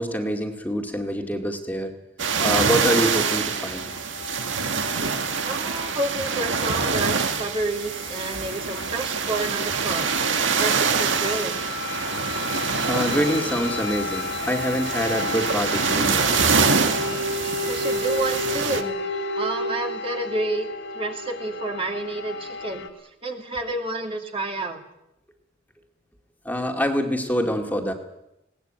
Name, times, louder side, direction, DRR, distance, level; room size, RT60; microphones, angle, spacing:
voice 1, 0.0-1.9 2.4-3.8 5.0-5.1 12.9-16.6 26.4-27.9, equal, 10° left, 3 dB, 2.2 m, -26 dB
sound 1, 2.2-18.8, right 5 dB, 80° right, 1.8 m, -25 dB
sound 2, 2.9-22.9, left 2 dB, 75° left, 3.1 m, -33 dB
voice 2, 5.4-10.1 10.6-11.6 17.7-20.7 20.9-22.9 23.2-24.8, right 2 dB, 30° right, 3 dB, 2.4 m, -29 dB
21.0 x 18.5 x 9.1 m, 0.87 s
head